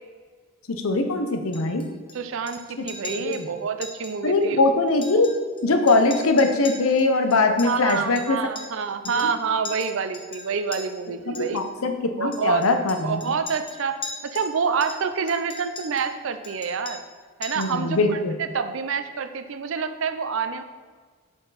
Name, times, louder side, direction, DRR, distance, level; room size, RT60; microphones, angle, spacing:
voice 1, 0.7-1.8 3.0-3.5 4.2-5.3 5.6-8.4 9.0-9.1 11.3-11.9 12.2-13.2 17.6-18.3, left 3 dB, 80° left, 7 dB, 0.7 m, -21 dB
Chink clink, 1.5-2.1 2.5-2.6 2.9-3.4 3.8-4.1 4.4-4.5 4.9-5.6 5.9-8.8 9.1-9.4 9.7-10.8 11.4-11.6 12.3-14.5 14.8-16.1 16.4-17.2 17.4-17.8, left 3 dB, 25° left, 0.8 m, -39 dB
voice 2, 2.1-4.6 7.6-11.6 12.2-12.7 13.0-14.0 14.2-17.0 17.4-20.6, right 5 dB, 65° right, 9 dB, 0.5 m, -27 dB
7.4 x 4.5 x 4.0 m, 1.5 s
head